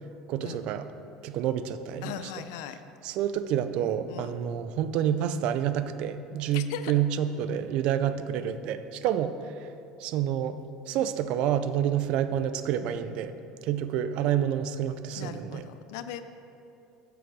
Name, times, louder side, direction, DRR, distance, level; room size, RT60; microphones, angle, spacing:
voice 1, 0.3-0.9 1.2-2.1 3.0-9.3 9.6-9.7 10.0-10.6 10.9-13.3 13.6-15.6, right 10 dB, 55° right, 11 dB, 0.4 m, -28 dB
voice 2, 2.0-2.8 4.1-4.4 6.5-6.9 15.2-16.2, left 10 dB, 85° left, 10 dB, 0.4 m, -38 dB
8.0 x 5.0 x 6.1 m, 2.7 s
cardioid pair, 150°, 2 cm